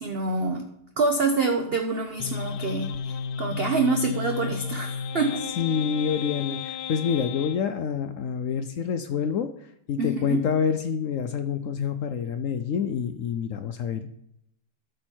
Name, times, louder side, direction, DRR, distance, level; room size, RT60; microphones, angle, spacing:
voice 1, 0.0-0.7 1.0-5.5 10.0-10.5, right 3 dB, 45° right, 3 dB, 0.9 m, -26 dB
sound 1, 2.2-7.6, left 6 dB, 80° left, 1.2 m, -33 dB
voice 2, 5.6-9.5 9.9-14.1, left 7 dB, 65° left, 9 dB, 0.9 m, -27 dB
13.0 x 6.3 x 4.5 m, 0.77 s
omnidirectional pair, 1.8 m